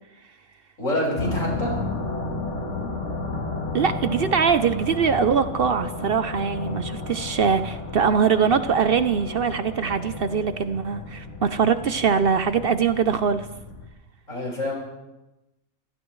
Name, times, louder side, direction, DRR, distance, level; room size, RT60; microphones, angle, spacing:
voice 1, 0.8-1.7 14.3-14.7, left 1 dB, 80° left, -2 dB, 5.9 m, -26 dB
sound 1, 1.2-13.9, left 3 dB, 65° left, 2.0 m, -33 dB
voice 2, 3.7-13.5, right 6 dB, 55° right, 11 dB, 0.7 m, -22 dB
25.0 x 17.0 x 3.2 m, 0.99 s
omnidirectional pair, 1.3 m